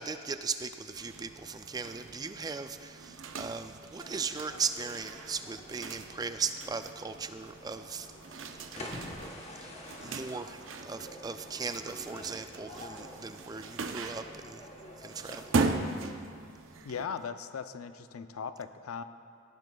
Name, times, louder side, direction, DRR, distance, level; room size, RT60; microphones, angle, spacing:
voice 1, 0.0-9.0 9.6-9.7 10.0-14.7 15.0-15.7, right 5 dB, 20° right, 9 dB, 0.3 m, -38 dB
opening file cabinet search close file cabinet, 0.9-17.1, right 3 dB, 60° right, 0.6 m, -39 dB
sound 1, 3.9-15.9, left 1 dB, 30° left, 1.1 m, -49 dB
voice 2, 16.8-19.0, left 6 dB, 85° left, 10 dB, 0.5 m, -38 dB
17.0 x 12.0 x 2.3 m, 2.2 s
head